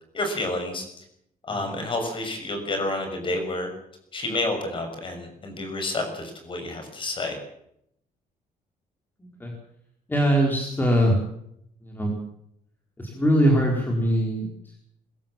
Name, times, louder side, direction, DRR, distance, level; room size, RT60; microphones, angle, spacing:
voice 1, 0.1-1.0 1.4-3.7 4.1-7.4, left 2 dB, 35° left, 6 dB, 6.5 m, -29 dB
voice 2, 9.2-9.5 10.1-11.2 11.8-12.2 13.0-14.8, equal, 15° left, 0 dB, 4.5 m, -22 dB
22.5 x 15.5 x 7.5 m, 0.75 s
cardioid pair, 160°, 15 cm